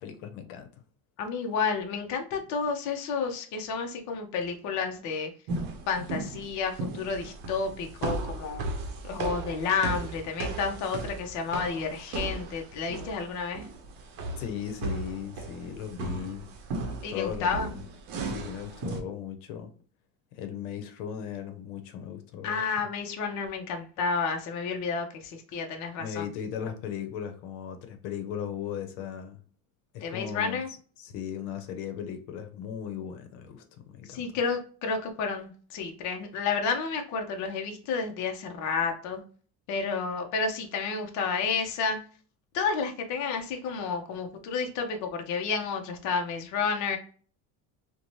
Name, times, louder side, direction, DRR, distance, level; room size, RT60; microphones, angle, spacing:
voice 1, 0.0-0.7 14.4-16.5 17.1-17.8 18.2-19.7 20.3-22.6 26.0-29.4 29.9-30.6 31.0-34.3, left 8 dB, 85° left, 0.7 m, -37 dB
voice 2, 1.2-5.3 5.9-8.6 9.0-13.7 17.0-17.7 22.4-26.2 30.0-30.7 34.1-39.2 39.7-42.0 42.5-47.0, left 5 dB, 45° left, 0.6 m, -31 dB
sound 1, 5.5-19.0, right 3 dB, 55° right, 0.7 m, -36 dB
2.6 x 2.1 x 3.0 m
cardioid pair, 150°, 41 cm